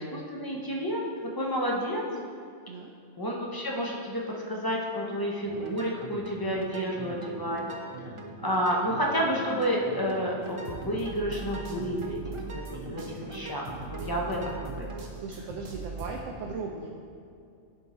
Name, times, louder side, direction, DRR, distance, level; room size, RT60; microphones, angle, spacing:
voice 1, 0.0-2.0 3.2-7.6 8.4-15.0, equal, 20° left, -2 dB, 0.7 m, -30 dB
sound 1, 5.4-15.0, right 3 dB, 45° right, 0.4 m, -42 dB
sound 2, 10.4-16.3, right 4 dB, 65° right, 1.2 m, -41 dB
voice 2, 14.9-16.9, right 4 dB, 80° right, 0 dB, 1.0 m, -38 dB
10.0 x 3.8 x 4.2 m, 2.5 s
omnidirectional pair, 1.3 m